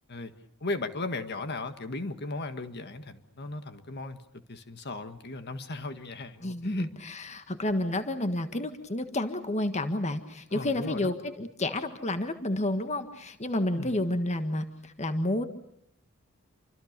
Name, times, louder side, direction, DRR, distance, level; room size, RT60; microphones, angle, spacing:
voice 1, 0.6-4.2 4.5-6.9 10.5-11.1 13.7-13.9, left 2 dB, 55° left, 9 dB, 1.7 m, -36 dB
voice 2, 6.4-15.4, left 1 dB, 35° left, 8 dB, 1.6 m, -30 dB
28.5 x 25.5 x 6.7 m, 0.71 s
head